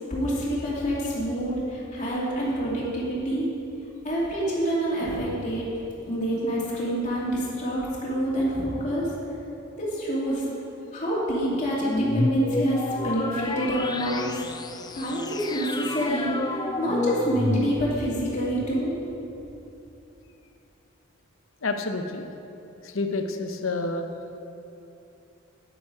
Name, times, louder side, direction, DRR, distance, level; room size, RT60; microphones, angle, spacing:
voice 1, 0.1-3.5 4.0-5.7 6.1-9.1 9.7-10.4 10.9-14.3 14.9-18.9, equal, 35° left, -6 dB, 2.7 m, -27 dB
sound 1, 11.8-18.1, left 2 dB, 20° left, 0.4 m, -29 dB
voice 2, 21.6-22.3 22.8-24.1, left 3 dB, 70° left, 6 dB, 0.8 m, -29 dB
10.0 x 9.5 x 4.7 m, 2.8 s
head